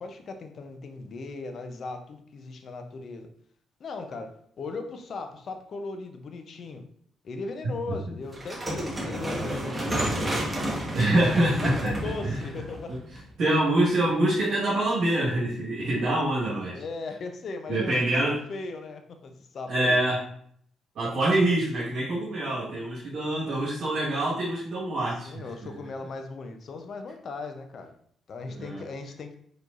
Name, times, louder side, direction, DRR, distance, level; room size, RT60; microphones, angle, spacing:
voice 1, 0.0-3.3 3.8-6.8 7.2-10.4 11.6-13.0 16.7-20.0 25.2-27.9 28.3-29.4, left 3 dB, 55° left, 6 dB, 0.7 m, -38 dB
sound 1, 8.3-13.5, right 1 dB, 20° right, 1.3 m, -31 dB
voice 2, 10.9-12.5 12.9-13.0 13.4-16.8 17.7-18.4 19.7-20.2 20.9-25.4 28.5-28.8, right 1 dB, 65° right, -7 dB, 1.6 m, -25 dB
4.8 x 4.3 x 2.6 m, 0.64 s
cardioid pair, 90°, 0 cm